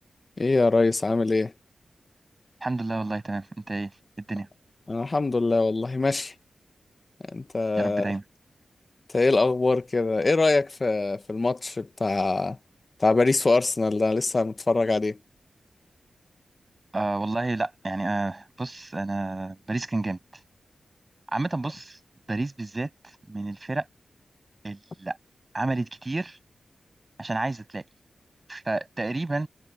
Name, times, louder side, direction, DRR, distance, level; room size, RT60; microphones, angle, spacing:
voice 1, 0.4-1.5 4.9-6.3 7.3-8.1 9.1-12.6 13.0-15.2, left 3 dB, 35° left, 1.0 m, -23 dB
voice 2, 2.6-3.9 4.2-4.5 7.8-8.2 16.9-20.2 21.3-22.0 22.3-22.9 23.3-23.9 24.6-25.2 25.5-26.4 27.2-27.8 28.5-29.5, right 2 dB, 25° right, 7.6 m, -30 dB
wide cardioid pair, 110°, 0 cm